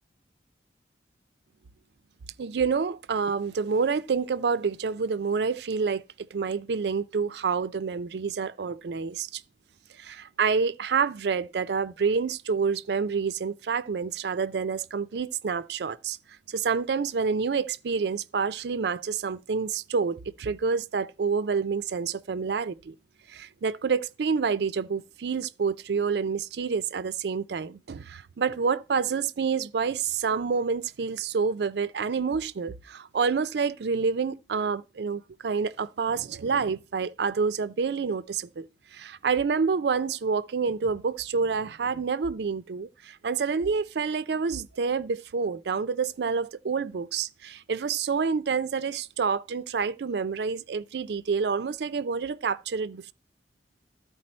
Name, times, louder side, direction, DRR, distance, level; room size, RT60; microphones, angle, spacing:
voice 1, 2.4-6.0 6.3-9.4 10.0-16.2 16.5-22.9 23.3-38.7 38.9-53.1, right 5 dB, 65° right, 0.4 m, -28 dB
13.0 x 4.7 x 4.3 m
head